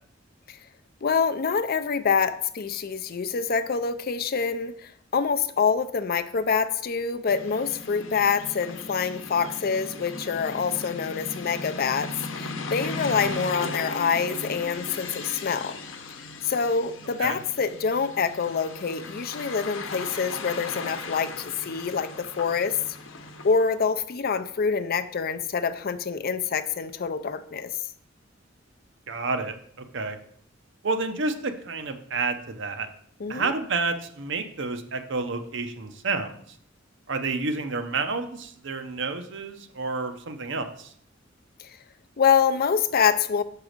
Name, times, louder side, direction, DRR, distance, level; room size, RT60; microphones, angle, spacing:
voice 1, 1.0-12.1 12.4-15.8 16.4-22.8 23.4-27.7 33.2-33.5 41.6-41.7 42.2-43.4, left 6 dB, 50° left, 10 dB, 0.5 m, -26 dB
sound 1, 7.3-23.7, left 3 dB, 75° left, 0.9 m, -37 dB
voice 2, 13.1-13.4 17.2-17.4 29.1-29.5 29.9-30.2 30.8-32.9 33.3-36.3 37.1-40.9, right 3 dB, 65° right, 8 dB, 0.8 m, -30 dB
6.0 x 4.7 x 6.5 m, 0.64 s
head